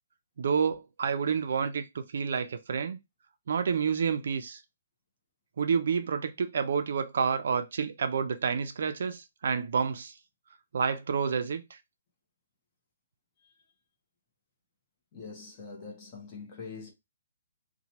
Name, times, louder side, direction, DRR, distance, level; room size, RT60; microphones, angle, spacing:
voice 1, 0.4-3.0 3.5-4.6 5.6-10.1 10.7-11.6, right 6 dB, 55° right, 0.4 m, -29 dB
voice 2, 15.1-16.9, left 4 dB, 25° left, 0.9 m, -44 dB
2.9 x 2.2 x 2.8 m
hypercardioid pair, 170°, 0 cm